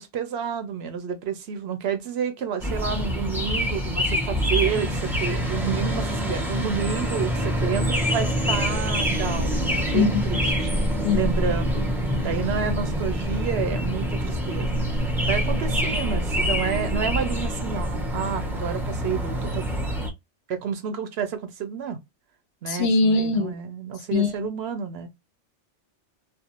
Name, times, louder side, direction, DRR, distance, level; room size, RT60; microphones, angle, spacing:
voice 1, 0.0-9.5 9.9-10.7 11.1-11.8 12.2-14.7 15.3-19.6 20.5-22.0 22.6-25.1, right 7 dB, 65° right, 0.8 m, -30 dB
sound 1, 2.6-20.1, equal, 5° right, 0.5 m, -25 dB
voice 2, 9.9-10.4 11.0-11.3 22.7-23.5 24.1-24.3, left 4 dB, 65° left, 0.7 m, -22 dB
2.5 x 2.2 x 2.8 m
omnidirectional pair, 1.2 m